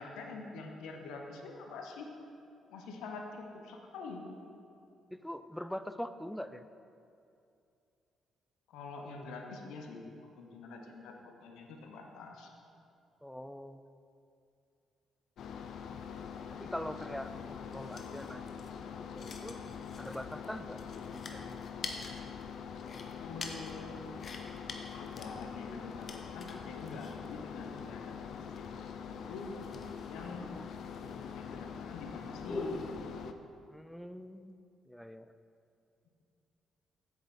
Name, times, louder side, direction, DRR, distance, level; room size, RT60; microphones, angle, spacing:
voice 1, 0.0-2.1 2.7-4.3 8.7-12.5 17.0-17.2 18.0-18.2 23.2-23.9 24.9-29.5 30.1-30.5 31.0-33.0, left 4 dB, 90° left, 2 dB, 0.8 m, -46 dB
voice 2, 5.1-6.7 13.2-13.9 16.6-18.5 19.0-19.6 20.0-20.8 21.1-21.6 30.4-30.6 33.7-34.6 34.9-35.3, equal, 5° left, 11 dB, 0.3 m, -43 dB
sound 1, 15.4-33.3, left 7 dB, 70° left, 0.4 m, -44 dB
sound 2, 16.0-33.0, left 3 dB, 45° left, 0.8 m, -47 dB
7.5 x 7.1 x 4.2 m, 2.5 s
cardioid pair, 90°, 0 cm